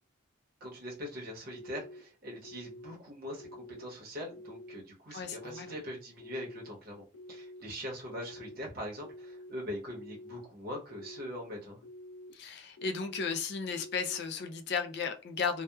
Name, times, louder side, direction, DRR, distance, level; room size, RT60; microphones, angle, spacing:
voice 1, 0.6-11.8, equal, 45° right, 0.8 m, -42 dB
sound 1, 1.5-2.0 2.4-2.9 3.4-3.9 4.3-4.8 5.3-5.8 6.2-6.7 7.1-7.6 8.1-8.6 9.0-9.5 9.9-10.4 10.9-11.4 11.8-12.3 12.8-13.3 13.7-14.2, left 1 dB, 75° left, 0.9 m, -48 dB
voice 2, 5.1-5.7 12.3-15.6, left 5 dB, 50° left, 0.4 m, -34 dB
2.8 x 2.1 x 2.2 m
head